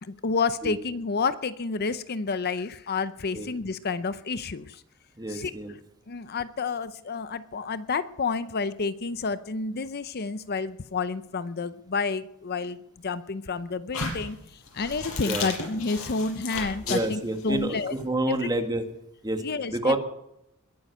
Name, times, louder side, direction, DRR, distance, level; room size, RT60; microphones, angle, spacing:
voice 1, 0.0-4.8 5.3-5.5 6.1-14.4 14.7-17.9 18.3-18.4 19.4-20.0, left 4 dB, 50° left, 14 dB, 0.6 m, -30 dB
voice 2, 5.2-5.7 15.3-15.5 16.8-18.8 19.2-19.4 19.7-20.0, right 1 dB, 20° right, 6 dB, 1.8 m, -28 dB
sound 1, 13.9-18.0, left 4 dB, 85° left, 6.9 m, -34 dB
22.0 x 9.4 x 6.7 m, 0.81 s
head